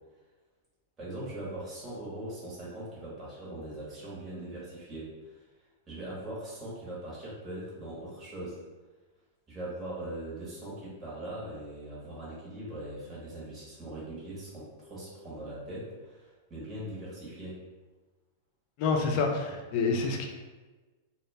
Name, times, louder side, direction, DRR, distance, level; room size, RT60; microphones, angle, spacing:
voice 1, 1.0-5.4 5.9-8.6 9.5-17.6, right 1 dB, 25° right, -8 dB, 1.1 m, -41 dB
voice 2, 18.8-20.3, left 4 dB, 50° left, 2 dB, 0.5 m, -27 dB
2.2 x 2.0 x 3.3 m, 1.2 s
hypercardioid pair, 115°, 0 cm